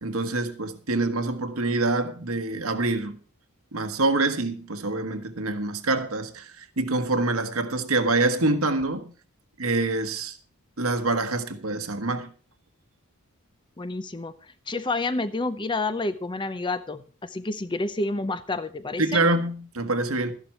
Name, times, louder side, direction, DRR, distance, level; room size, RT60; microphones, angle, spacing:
voice 1, 0.0-3.2 3.7-9.1 9.6-10.4 10.8-12.3 19.0-20.3, right 2 dB, 75° right, 1.5 m, -26 dB
voice 2, 13.8-14.3 14.7-19.2, left 2 dB, 20° left, 0.6 m, -29 dB
13.5 x 11.0 x 4.5 m
head